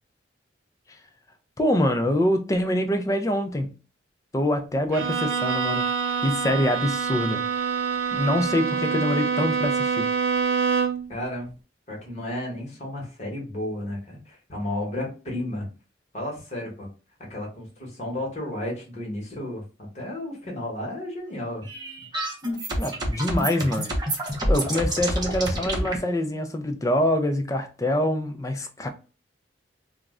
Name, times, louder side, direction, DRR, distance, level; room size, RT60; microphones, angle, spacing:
voice 1, 1.6-3.7 4.3-5.9 6.2-7.5 8.1-10.1 22.8-23.9 24.5-28.9, left 1 dB, 15° left, 0.3 m, -25 dB
Bowed string instrument, 4.9-11.1, right 6 dB, 85° right, 0.4 m, -26 dB
voice 2, 11.1-11.5 11.9-15.7 16.1-16.9 17.3-19.6 19.9-21.6, left 1 dB, 35° left, 1.1 m, -33 dB
sound 1, 21.6-26.0, right 1 dB, 20° right, 0.6 m, -27 dB
2.4 x 2.1 x 3.5 m
head